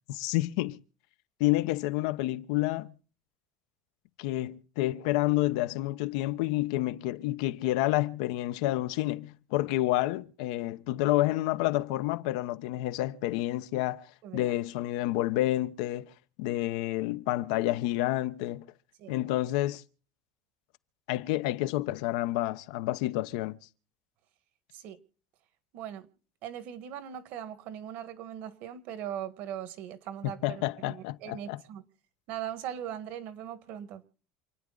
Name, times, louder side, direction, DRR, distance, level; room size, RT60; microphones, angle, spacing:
voice 1, 0.1-0.8 1.4-2.9 4.2-14.1 14.3-16.1 16.4-18.6 19.1-19.8 21.1-23.6 30.4-31.6, left 16 dB, 80° left, 0.9 m, -29 dB
voice 2, 14.2-14.5 19.0-19.1 24.7-25.0 25.7-26.1 26.4-31.8 32.3-34.0, right 10 dB, 55° right, 1.6 m, -40 dB
28.0 x 9.7 x 3.9 m
cardioid pair, 160°, 4 cm